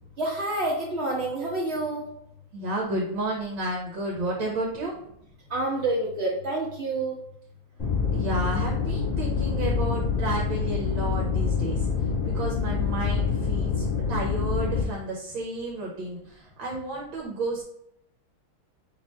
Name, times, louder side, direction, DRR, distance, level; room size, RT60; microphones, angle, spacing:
voice 1, 0.2-2.0 5.5-7.2, right 2 dB, 40° right, -4 dB, 1.1 m, -28 dB
voice 2, 2.5-4.9 8.1-11.9 12.2-17.6, right 2 dB, 70° right, -2 dB, 1.6 m, -32 dB
sound 1, 7.8-14.8, left 5 dB, 30° left, 1.2 m, -26 dB
3.7 x 3.1 x 4.1 m, 0.74 s
omnidirectional pair, 2.4 m